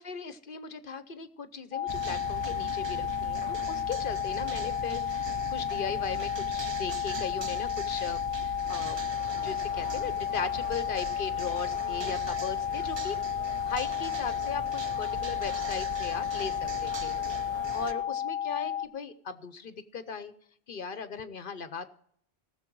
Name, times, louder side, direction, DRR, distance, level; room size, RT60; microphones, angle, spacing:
voice 1, 0.0-9.0 9.3-13.2 13.5-17.2 17.5-20.3 20.7-21.9, left 5 dB, 55° left, 12 dB, 1.0 m, -38 dB
sound 1, 1.7-18.9, left 10 dB, 40° left, 0.6 m, -32 dB
sound 2, 1.9-17.9, right 5 dB, 40° right, 0.4 m, -41 dB
sound 3, 8.6-18.0, right 1 dB, 70° right, 2.5 m, -48 dB
19.0 x 7.0 x 4.6 m, 0.66 s
omnidirectional pair, 1.1 m